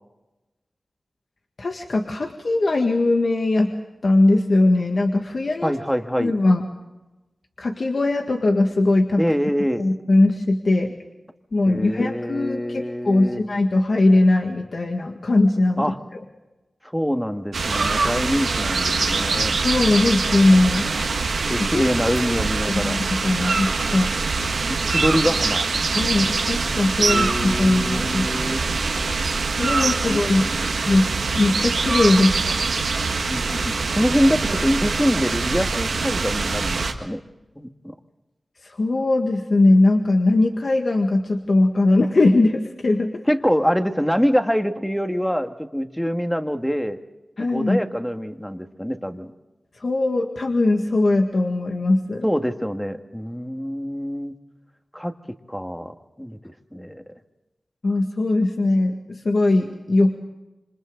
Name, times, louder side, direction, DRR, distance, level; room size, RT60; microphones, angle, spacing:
voice 1, 1.6-3.7 4.0-5.7 6.2-6.7 7.6-9.2 9.8-10.9 11.5-15.9 19.6-20.9 21.5-21.8 22.4-24.1 25.9-28.3 29.6-30.5 30.9-32.6 38.6-43.2 47.4-47.8 49.8-52.3 57.8-60.2, left 2 dB, 65° left, 3 dB, 1.8 m, -20 dB
voice 2, 5.6-6.3 9.2-9.9 11.7-13.4 15.8-16.0 16.9-19.5 21.5-23.0 24.6-25.7 27.0-28.6 29.8-30.6 33.3-37.2 37.6-37.9 43.3-47.0 47.5-49.3 52.2-54.3 54.9-55.1 55.5-57.0, equal, 5° left, 6 dB, 1.8 m, -25 dB
sound 1, 17.5-36.9, right 4 dB, 85° right, 1.8 m, -24 dB
28.0 x 26.0 x 3.9 m, 1.1 s
cardioid pair, 50°, 0 cm